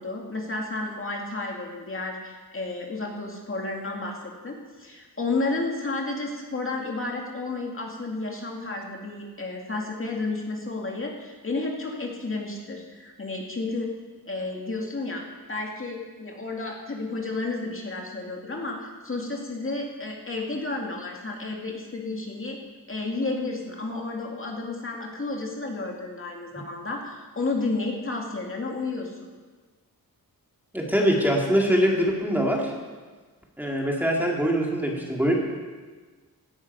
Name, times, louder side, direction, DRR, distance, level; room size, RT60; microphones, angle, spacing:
voice 1, 0.0-13.9 14.3-22.6 22.9-29.1, left 3 dB, 35° left, 0 dB, 2.3 m, -32 dB
voice 2, 30.7-32.7 33.6-35.3, equal, 5° right, -2 dB, 2.1 m, -23 dB
16.5 x 11.5 x 5.4 m, 1.4 s
wide cardioid pair, 125°, 37 cm